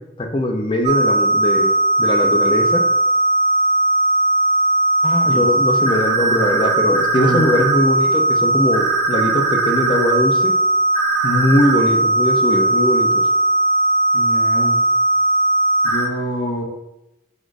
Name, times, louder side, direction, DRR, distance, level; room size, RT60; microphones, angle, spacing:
voice 1, 0.2-1.7 2.0-2.8 5.0-10.5 11.2-13.1, left 1 dB, 25° left, 4 dB, 0.4 m, -20 dB
sound 1, 0.8-16.1, right 2 dB, 45° right, 0.6 m, -18 dB
voice 2, 7.1-7.5 14.1-14.8 15.8-16.6, right 1 dB, 65° left, 1 dB, 0.9 m, -26 dB
4.2 x 2.5 x 4.6 m, 0.92 s
head